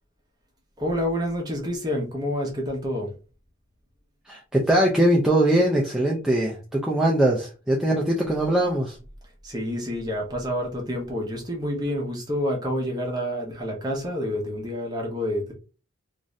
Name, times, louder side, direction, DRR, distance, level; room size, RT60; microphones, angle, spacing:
voice 1, 0.8-3.1 9.4-15.5, equal, 20° right, 0 dB, 0.8 m, -28 dB
voice 2, 4.3-9.0, right 1 dB, 5° right, -3 dB, 0.4 m, -21 dB
2.5 x 2.5 x 3.1 m, 0.34 s
head